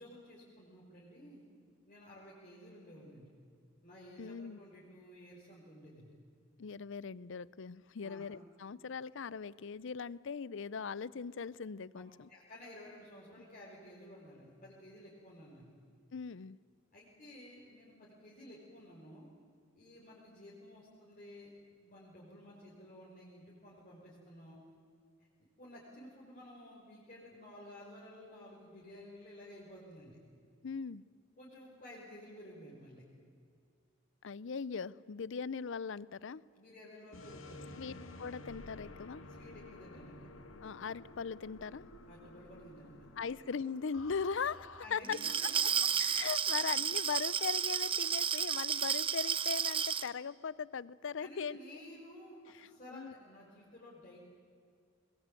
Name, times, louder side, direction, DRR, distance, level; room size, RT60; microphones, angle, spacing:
voice 1, 0.0-1.4 1.9-3.3 3.8-6.1 8.0-8.3 11.9-12.0 12.3-15.7 16.9-19.3 19.7-24.6 25.4-30.2 31.4-33.0 36.5-37.8 39.3-40.3 42.1-43.3 44.8-45.6 46.4-46.6 51.2-54.2, left 1 dB, 40° left, -7 dB, 5.3 m, -53 dB
voice 2, 4.2-4.6 6.6-12.3 16.1-16.6 30.6-31.0 34.2-36.4 37.8-37.9 38.2-39.2 40.6-41.8 43.2-45.2 46.0-51.6 52.9-53.1, left 6 dB, 70° left, 21 dB, 0.5 m, -39 dB
sound 1, 37.1-44.9, left 2 dB, 85° left, 2.2 m, -52 dB
Glass, 45.0-50.1, right 8 dB, 25° right, 0.7 m, -32 dB
22.0 x 21.0 x 9.0 m, 2.2 s
head